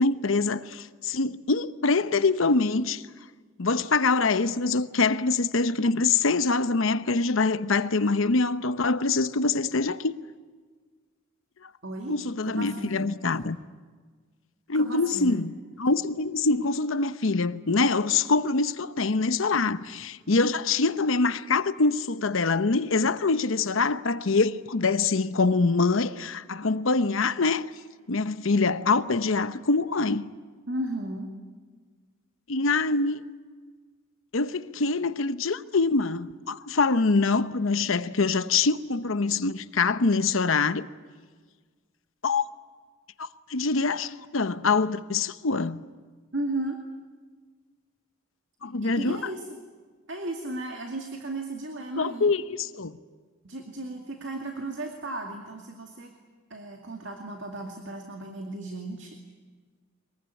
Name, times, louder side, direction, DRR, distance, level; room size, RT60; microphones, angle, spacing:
voice 1, 0.0-3.0 3.6-10.2 12.1-13.6 14.7-15.5 15.8-27.7 28.1-30.3 32.5-33.3 34.3-40.9 42.2-42.5 43.2-45.8 48.6-49.2 52.0-52.9, left 3 dB, 75° left, 0.9 m, -24 dB
voice 2, 11.8-12.1 12.5-13.0 13.2-13.4 14.7-15.4 30.7-31.3 46.3-46.8 48.6-49.5 50.1-52.3 53.4-56.1 56.5-59.2, right 2 dB, 65° right, 2.3 m, -35 dB
22.5 x 22.0 x 9.8 m
head